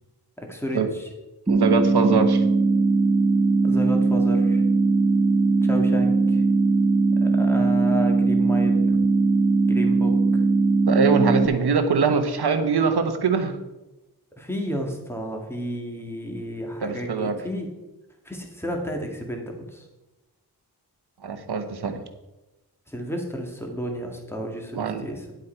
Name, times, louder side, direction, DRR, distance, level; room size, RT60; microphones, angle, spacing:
voice 1, 0.4-1.1 3.6-4.6 5.6-6.4 7.2-9.0 9.7-10.4 14.4-17.7 18.3-19.9 22.9-25.3, equal, 5° left, 2 dB, 1.9 m, -32 dB
sound 1, 1.5-11.5, right 3 dB, 10° right, 0.6 m, -20 dB
voice 2, 1.5-2.4 10.9-13.6 16.8-17.4 21.2-22.0 24.7-25.0, right 5 dB, 75° right, 7 dB, 1.2 m, -23 dB
10.5 x 8.1 x 4.5 m, 1.0 s
wide cardioid pair, 120°, 39 cm